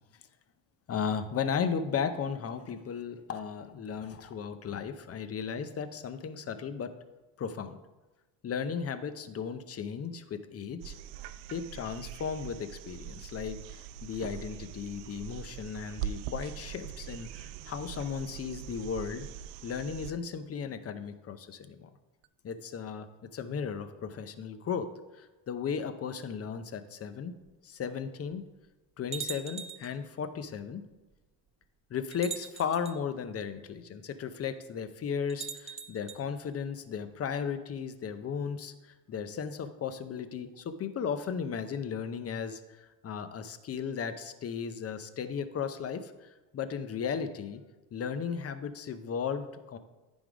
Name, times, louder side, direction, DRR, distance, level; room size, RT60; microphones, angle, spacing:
voice 1, 0.9-6.9 7.4-7.8 8.4-10.9 11.5-19.3 19.6-21.9 22.4-23.1 23.3-24.9 25.2-27.4 27.6-28.4 29.0-30.8 31.9-38.7 39.1-47.6 47.9-49.8, left 6 dB, 30° left, 11 dB, 0.6 m, -35 dB
sound 1, 10.8-20.1 22.2-22.3, right 11 dB, 90° right, 0.6 m, -42 dB
sound 2, 27.5-27.6 28.3-28.4 29.1-30.0 31.1-31.2 32.1-33.0 35.3-36.2, right 6 dB, 15° right, 0.4 m, -41 dB
9.6 x 3.6 x 5.0 m, 1.1 s
supercardioid pair, 90°, 50 cm